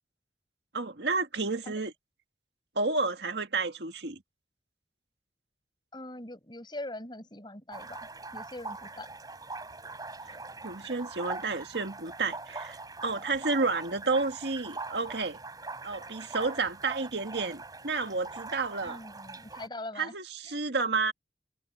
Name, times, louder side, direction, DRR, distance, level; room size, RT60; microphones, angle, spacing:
voice 1, 0.7-1.9 2.8-4.2 10.2-10.3 10.6-15.4 15.8-19.0 20.0-21.1, right 3 dB, 75° right, 1.8 m, -31 dB
voice 2, 5.9-9.1 18.8-20.1 20.4-20.6, left 1 dB, 25° left, 7.3 m, -42 dB
sound 1, 7.7-19.7, right 3 dB, 20° right, 5.7 m, -42 dB
head